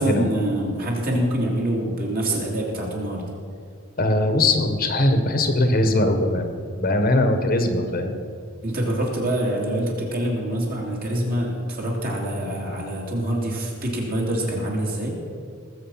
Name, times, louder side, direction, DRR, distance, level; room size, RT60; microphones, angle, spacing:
voice 1, 0.0-3.2 8.6-15.1, right 1 dB, 45° right, -2 dB, 3.1 m, -25 dB
voice 2, 4.0-6.5 6.8-8.1, left 1 dB, 45° left, 6 dB, 1.2 m, -20 dB
19.0 x 7.8 x 5.7 m, 2.3 s
head